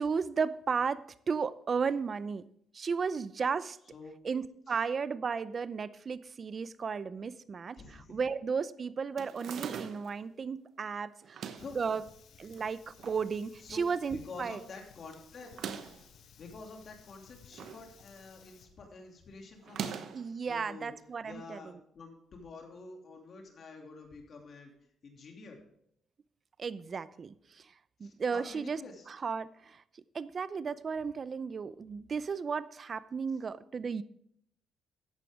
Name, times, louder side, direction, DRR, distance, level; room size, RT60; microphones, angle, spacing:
voice 1, 0.0-2.4 2.7-3.8 4.2-7.8 8.1-11.5 11.8-12.0 12.4-14.6 20.1-21.6 26.6-27.6 28.0-28.8 29.1-29.8 30.1-34.0, right 5 dB, 45° right, 16 dB, 0.6 m, -34 dB
voice 2, 7.7-8.2 11.3-11.8 13.6-13.8 14.1-15.5 16.4-19.9 20.4-20.9 21.2-24.7 25.0-25.6 28.0-29.1 33.3-33.4, left 3 dB, 50° left, 2 dB, 2.7 m, -48 dB
sound 1, 9.2-10.2 11.2-11.8 12.6-13.2 13.6-13.7 13.9-14.0 15.4-16.1 17.1-17.9 18.2-18.5 19.6-20.3, right 7 dB, 70° right, 1.0 m, -41 dB
Fire, 11.6-18.7, left 7 dB, 70° left, 1.2 m, -58 dB
13.5 x 9.1 x 3.6 m, 0.71 s
cardioid pair, 90°, 0 cm